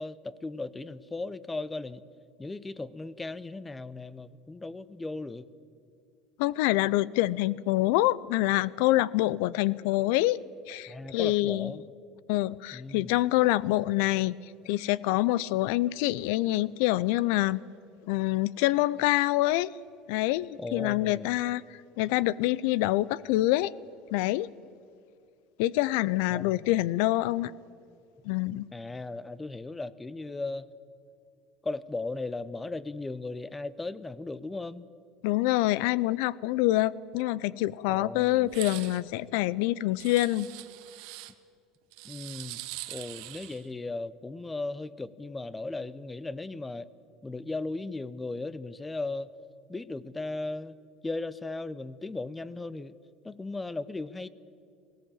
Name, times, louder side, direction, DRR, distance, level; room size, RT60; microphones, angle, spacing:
voice 1, 0.0-2.0 2.4-5.5 10.9-11.9 12.7-13.2 20.6-21.3 26.3-26.8 28.7-30.7 31.6-34.9 37.9-38.5 42.0-42.6 42.9-46.9 47.2-49.3 49.7-50.8 51.0-52.9 53.2-54.3, left 2 dB, 15° left, 18 dB, 0.7 m, -37 dB
voice 2, 6.4-10.4 10.7-11.7 12.3-14.3 14.7-17.6 18.1-19.7 20.1-21.6 22.0-23.7 24.1-24.5 25.6-27.5 28.3-28.7 35.2-40.5, left 17 dB, 80° left, 21 dB, 0.5 m, -26 dB
sound 1, 38.5-39.0 40.0-41.3 41.9-43.7, right 19 dB, 75° right, 1.1 m, -42 dB
18.5 x 17.0 x 8.8 m, 2.4 s
supercardioid pair, 125°, 0 cm